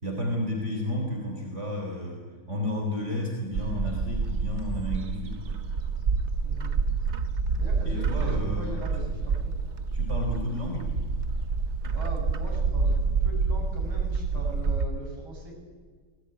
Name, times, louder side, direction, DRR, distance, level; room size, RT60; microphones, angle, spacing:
voice 1, 0.0-5.6 7.8-9.1 9.9-10.9, left 1 dB, 30° right, 1 dB, 3.9 m, -32 dB
Bird, 3.5-14.8, right 4 dB, 50° right, 0.8 m, -28 dB
voice 2, 6.4-6.8 7.6-9.5 11.9-15.5, right 1 dB, 65° right, -2 dB, 7.3 m, -41 dB
24.5 x 20.0 x 9.8 m, 1.5 s
omnidirectional pair, 2.4 m